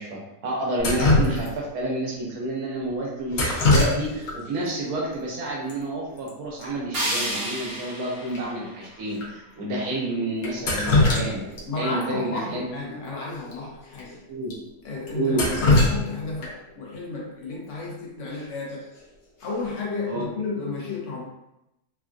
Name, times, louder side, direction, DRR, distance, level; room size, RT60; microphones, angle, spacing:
voice 1, 0.0-11.4 11.8-13.0 14.3-14.5 15.1-15.5 20.1-20.3, right 2 dB, 85° right, -3 dB, 1.3 m, -29 dB
Drip, 0.8-1.8 3.3-4.4 4.7-4.8 5.7-5.8 6.0-6.3 6.6-6.7 7.1-7.2 7.7-7.8 8.3-8.4 9.1-9.3 10.4-11.6 12.0-12.1 13.4-13.5 13.9-14.0 14.5-14.6 15.1-16.7 18.7-19.0 19.4-19.8, left 2 dB, 85° left, 1.3 m, -22 dB
sound 1, 6.9-9.9, right 1 dB, 65° right, 1.1 m, -32 dB
voice 2, 11.7-14.2 14.8-18.9 19.4-21.3, left 3 dB, 65° left, -3 dB, 0.9 m, -32 dB
3.4 x 2.3 x 2.5 m, 0.88 s
omnidirectional pair, 1.5 m